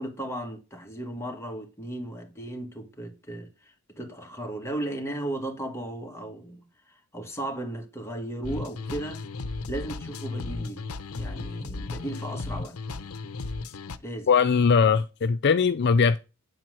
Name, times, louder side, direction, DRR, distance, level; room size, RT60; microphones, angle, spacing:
voice 1, 0.0-9.2 9.7-10.9 11.1-12.8 14.0-14.3, right 1 dB, 10° left, 1.9 m, -36 dB
sound 1, 8.4-14.0, left 3 dB, 85° left, 0.7 m, -35 dB
voice 2, 14.3-16.2, left 5 dB, 50° left, 0.5 m, -20 dB
9.5 x 4.5 x 7.7 m
head